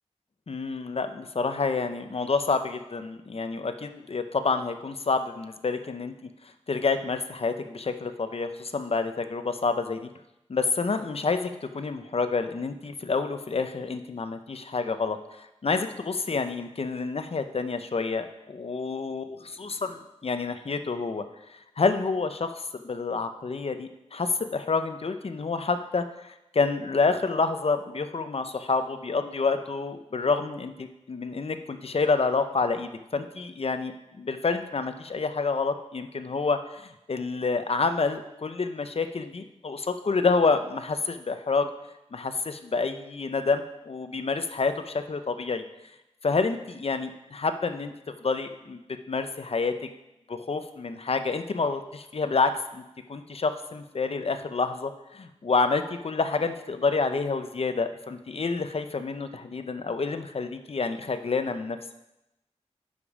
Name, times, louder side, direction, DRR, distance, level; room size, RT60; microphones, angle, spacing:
voice 1, 0.5-6.1 6.7-10.1 10.5-41.7 42.1-45.6 46.2-47.9 48.2-48.8 49.1-49.7 50.3-52.8 53.1-61.8, left 4 dB, 55° left, 8 dB, 0.7 m, -28 dB
10.5 x 5.1 x 4.9 m, 0.91 s
wide cardioid pair, 95°, 12 cm